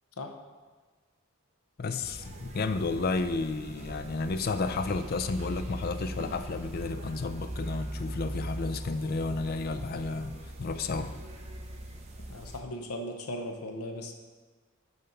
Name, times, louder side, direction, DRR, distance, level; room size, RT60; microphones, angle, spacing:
voice 1, 1.8-11.1, left 3 dB, 45° left, 10 dB, 0.4 m, -32 dB
sound 1, 2.0-12.6, right 1 dB, 30° right, 0.8 m, -40 dB
voice 2, 12.2-14.1, left 1 dB, 90° left, 4 dB, 0.8 m, -38 dB
6.7 x 5.2 x 5.8 m, 1.4 s
head